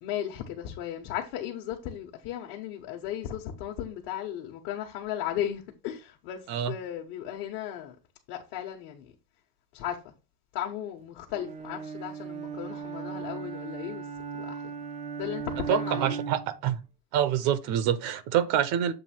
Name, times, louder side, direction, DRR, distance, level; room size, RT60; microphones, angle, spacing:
voice 1, 0.0-7.9 8.3-9.1 9.7-10.1 10.5-14.1 14.3-14.7 15.2-16.2, left 11 dB, 55° left, 1.3 m, -36 dB
Bowed string instrument, 11.3-16.6, right 6 dB, 15° right, 0.4 m, -37 dB
voice 2, 15.7-16.8 17.1-18.9, right 10 dB, 50° right, 0.8 m, -26 dB
7.6 x 2.7 x 5.8 m
supercardioid pair, 145°, 47 cm